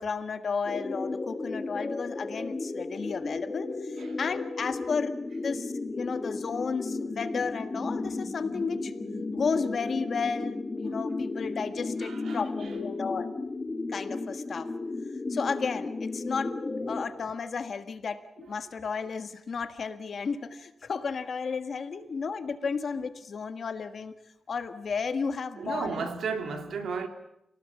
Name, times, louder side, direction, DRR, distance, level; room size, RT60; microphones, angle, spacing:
voice 1, 0.0-8.9 9.3-13.3 13.9-14.7 15.3-16.6 16.8-18.2 18.5-24.1 24.5-26.1, left 5 dB, 50° left, 1.6 m, -33 dB
sound 1, 0.6-17.0, left 3 dB, 25° left, 2.5 m, -34 dB
voice 2, 12.0-12.8 18.4-18.5 21.9-22.1 25.6-27.1, right 5 dB, 80° right, 3.0 m, -35 dB
28.0 x 18.5 x 8.4 m
wide cardioid pair, 165°, 0 cm